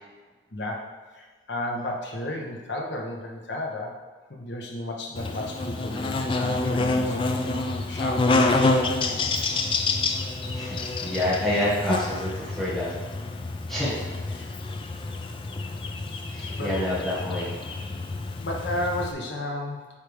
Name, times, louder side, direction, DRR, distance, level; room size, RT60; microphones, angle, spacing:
voice 1, 0.5-4.0 4.3-7.2 7.5-9.3 14.3-14.4 16.4-17.3 18.4-19.9, left 1 dB, 70° left, 0 dB, 1.0 m, -33 dB
Buzz, 5.2-19.1, left 3 dB, 25° left, 0.3 m, -28 dB
voice 2, 10.5-12.9 13.7-14.0 16.3-17.5, left 1 dB, ahead, -9 dB, 1.3 m, -28 dB
8.3 x 3.3 x 3.4 m, 1.3 s
head